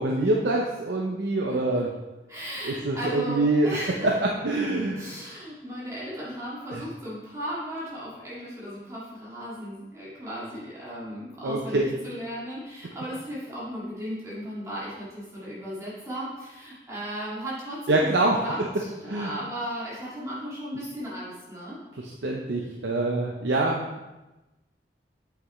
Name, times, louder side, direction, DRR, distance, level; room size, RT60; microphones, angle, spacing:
voice 1, 0.0-1.9 2.6-3.7 4.0-4.1 4.4-5.1 6.7-6.8 11.4-11.8 17.9-18.4 19.1-19.3 22.0-23.9, right 2 dB, 70° right, -1 dB, 0.7 m, -25 dB
voice 2, 1.5-1.8 2.3-4.1 5.0-21.8, equal, 15° right, -8 dB, 1.9 m, -36 dB
8.2 x 5.9 x 3.1 m, 1.1 s
head